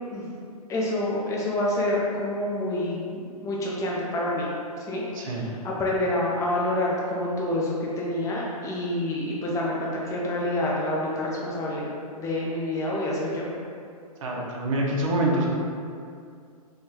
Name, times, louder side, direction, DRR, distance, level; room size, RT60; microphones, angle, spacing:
voice 1, 0.7-3.0 3.4-4.5 4.8-11.9 12.2-13.5, left 1 dB, 15° left, -4 dB, 0.6 m, -27 dB
voice 2, 5.1-5.4 14.2-15.5, right 1 dB, 60° right, -2 dB, 0.7 m, -25 dB
3.6 x 2.2 x 2.9 m, 2.3 s
hypercardioid pair, 125°, 19 cm